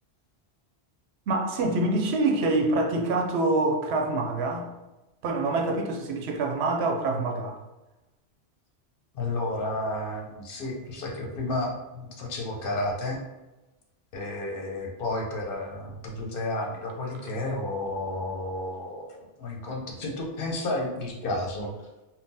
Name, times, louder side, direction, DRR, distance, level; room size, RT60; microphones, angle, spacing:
voice 1, 1.3-4.7 5.2-7.6, right 2 dB, 80° right, 2 dB, 0.8 m, -26 dB
voice 2, 9.1-13.2 14.1-19.0 19.4-21.7, left 2 dB, 60° left, 0 dB, 0.8 m, -31 dB
3.6 x 2.1 x 2.6 m, 1.0 s
omnidirectional pair, 1.1 m